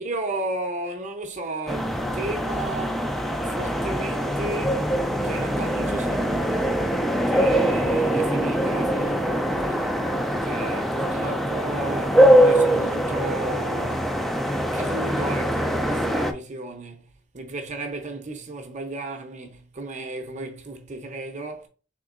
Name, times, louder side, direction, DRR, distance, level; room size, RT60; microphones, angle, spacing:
voice 1, 0.0-4.9 5.2-6.8 7.3-10.1 10.4-14.2 14.7-21.7, right 2 dB, 35° right, 0.7 m, -34 dB
sound 1, 1.7-16.3, equal, ahead, 0.3 m, -23 dB
3.8 x 3.6 x 2.5 m
head